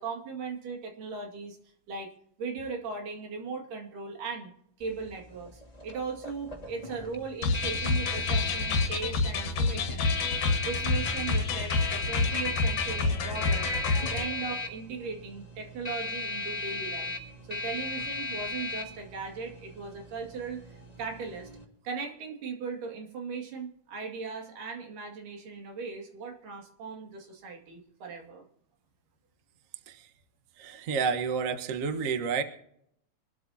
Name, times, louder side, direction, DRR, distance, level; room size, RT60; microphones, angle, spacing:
voice 1, 0.0-1.6 1.9-2.1 2.4-4.5 4.8-10.1 10.6-13.7 14.1-17.1 17.5-21.5 21.8-28.4, right 5 dB, 85° right, 2 dB, 3.9 m, -38 dB
sound 1, 4.8-21.6, left 2 dB, 15° left, 1.7 m, -37 dB
sound 2, 7.4-14.3, left 3 dB, 75° left, 2.8 m, -28 dB
voice 2, 30.6-32.4, right 5 dB, 70° right, 7 dB, 0.7 m, -30 dB
25.0 x 12.5 x 2.8 m, 0.71 s
omnidirectional pair, 3.6 m